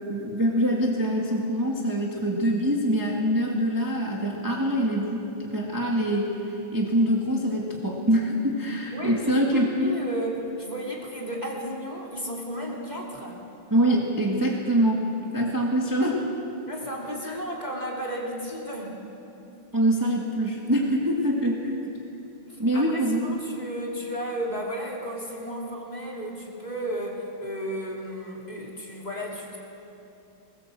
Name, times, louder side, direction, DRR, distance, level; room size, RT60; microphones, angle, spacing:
voice 1, 0.1-9.9 13.7-15.0 15.3-16.2 17.2-17.4 19.7-21.8 22.6-23.4, equal, 10° right, -2 dB, 1.8 m, -24 dB
voice 2, 8.9-13.4 16.7-19.0 22.5-29.6, equal, 20° left, -2 dB, 3.0 m, -33 dB
20.5 x 19.0 x 7.7 m, 2.9 s
omnidirectional pair, 2.2 m